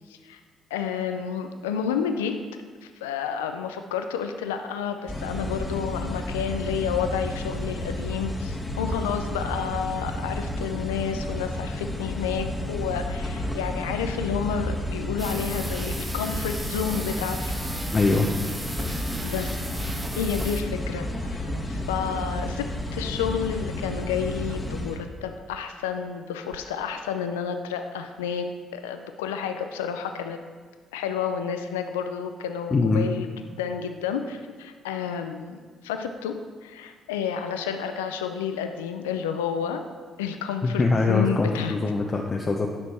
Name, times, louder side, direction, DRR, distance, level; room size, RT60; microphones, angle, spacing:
voice 1, 0.1-0.4 0.7-2.4 2.8-17.5 19.2-28.5 28.7-30.4 30.9-33.3 33.6-39.8 40.2-41.7, left 7 dB, 85° left, 7 dB, 0.4 m, -30 dB
sound 1, 5.1-25.0, left 1 dB, 15° left, 1.5 m, -31 dB
sound 2, 8.8-9.0 10.6-10.8 11.5-11.6 12.3-12.5 13.5-13.7 14.7-14.8 15.1-15.3 16.2-16.6 18.2-18.4 19.6-20.1 21.2-21.3 22.4-22.6 23.4-23.6 24.5-24.7 25.5-25.8 26.4-26.7, right 7 dB, 60° right, 0.6 m, -42 dB
sound 3, 15.2-20.6, right 1 dB, 15° right, 1.2 m, -37 dB
voice 2, 17.9-18.3 23.0-23.1 32.7-33.1 40.6-42.7, left 3 dB, 35° left, -1 dB, 0.9 m, -23 dB
9.8 x 6.2 x 4.3 m, 1.5 s
hypercardioid pair, 45°, 0 cm